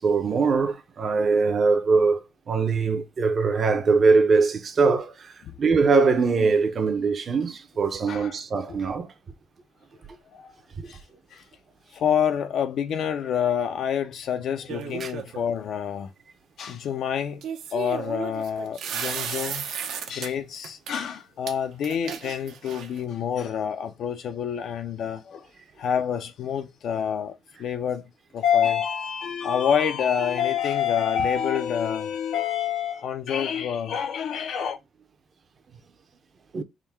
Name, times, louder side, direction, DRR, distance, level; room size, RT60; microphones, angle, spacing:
voice 1, 0.0-9.1 10.8-10.9 15.0-15.1 36.5-36.6, right 4 dB, 35° right, 0.6 m, -22 dB
voice 2, 11.9-16.1 16.6-17.4 17.7-25.5 25.8-28.0 28.3-34.8, left 8 dB, 60° left, 0.4 m, -27 dB
sound 1, 14.7-15.4 17.4-20.3 20.6-20.9 21.5-21.6 21.8-23.0, right 8 dB, 70° right, 0.7 m, -34 dB
3.7 x 2.1 x 4.4 m
cardioid pair, 140°, 0 cm